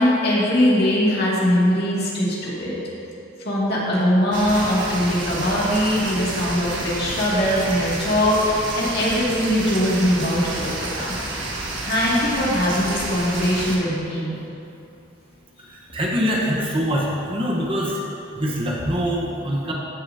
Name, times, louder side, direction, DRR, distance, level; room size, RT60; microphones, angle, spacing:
voice 1, 0.0-2.8 3.4-11.1 11.4-14.4, equal, 55° left, -6 dB, 2.2 m, -21 dB
sound 1, 4.3-13.8, right 2 dB, 85° right, 1.3 m, -30 dB
voice 2, 15.6-18.1 18.3-19.7, equal, 30° right, -3 dB, 1.0 m, -24 dB
15.0 x 6.9 x 2.7 m, 2.7 s
head